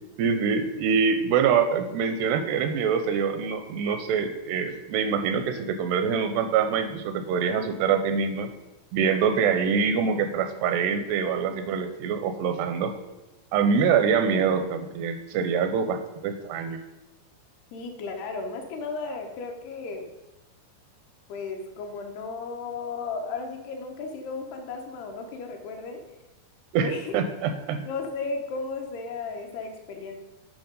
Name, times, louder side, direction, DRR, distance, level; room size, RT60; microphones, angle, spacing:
voice 1, 0.2-8.5 8.9-12.9 13.5-16.8 26.7-27.9, right 6 dB, 85° right, 8 dB, 2.4 m, -25 dB
voice 2, 17.7-20.1 21.3-26.1 26.8-27.1 27.9-30.2, left 4 dB, 80° left, 3 dB, 2.6 m, -34 dB
9.3 x 5.7 x 5.1 m, 1.0 s
omnidirectional pair, 5.1 m